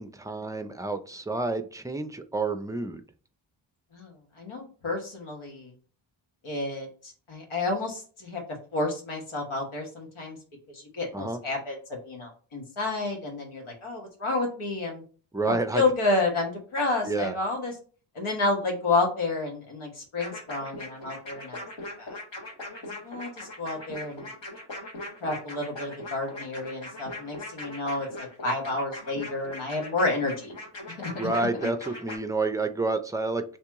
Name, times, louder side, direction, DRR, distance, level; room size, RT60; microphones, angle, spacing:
voice 1, 0.0-3.0 11.1-11.4 15.3-15.8 17.0-17.3 31.2-33.6, right 3 dB, 10° right, 8 dB, 0.4 m, -29 dB
voice 2, 3.9-5.7 6.4-8.4 8.7-10.4 10.7-15.0 15.4-17.7 18.1-21.6 22.0-22.2 23.0-24.3 25.2-30.5 30.9-31.0 31.6-31.7, left 2 dB, 85° left, 1 dB, 1.3 m, -30 dB
sound 1, 20.2-32.2, left 2 dB, 65° left, 1.5 m, -40 dB
3.0 x 2.8 x 3.5 m, 0.40 s
cardioid pair, 65°, 48 cm